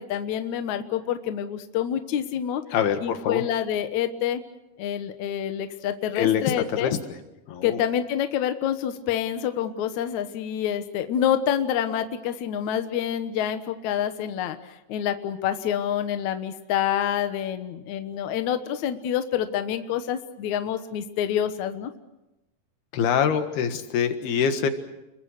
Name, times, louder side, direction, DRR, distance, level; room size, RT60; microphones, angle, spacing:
voice 1, 0.0-2.6 3.0-4.4 4.8-6.9 7.6-21.9, left 10 dB, 60° left, 8 dB, 2.3 m, -27 dB
voice 2, 2.7-3.4 6.2-7.0 7.5-7.8 22.9-24.7, left 8 dB, 80° left, 7 dB, 3.6 m, -24 dB
29.5 x 22.5 x 6.6 m, 0.94 s
omnidirectional pair, 4.4 m